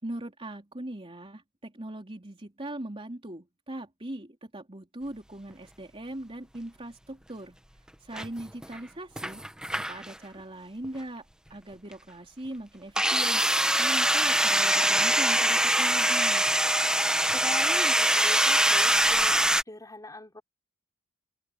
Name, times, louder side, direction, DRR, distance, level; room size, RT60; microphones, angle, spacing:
voice 1, 0.0-7.6 8.0-9.4 9.8-16.5, right 1 dB, 25° right, 3.4 m, -40 dB
sound 1, 8.1-8.8 9.2-10.1 10.8-11.0 13.0-19.6, right 1 dB, 5° right, 1.0 m, -23 dB
voice 2, 17.3-20.4, left 2 dB, 15° left, 5.6 m, -41 dB
open air
head